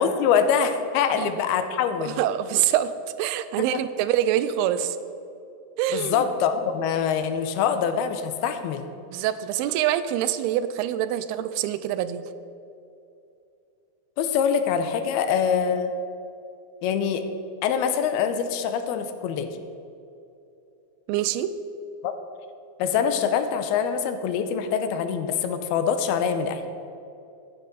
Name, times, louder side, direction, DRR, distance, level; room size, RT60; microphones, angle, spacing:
voice 1, 0.0-2.2 3.7-3.8 5.9-8.9 14.2-15.9 16.8-17.3 17.6-19.5 22.0-22.1 22.8-26.6, left 7 dB, 85° left, 9 dB, 2.6 m, -24 dB
voice 2, 2.0-2.9 3.2-5.0 5.8-6.2 9.1-12.2 21.1-21.5, right 12 dB, 85° right, 13 dB, 2.6 m, -25 dB
14.0 x 10.5 x 4.1 m, 2.7 s
omnidirectional pair, 4.5 m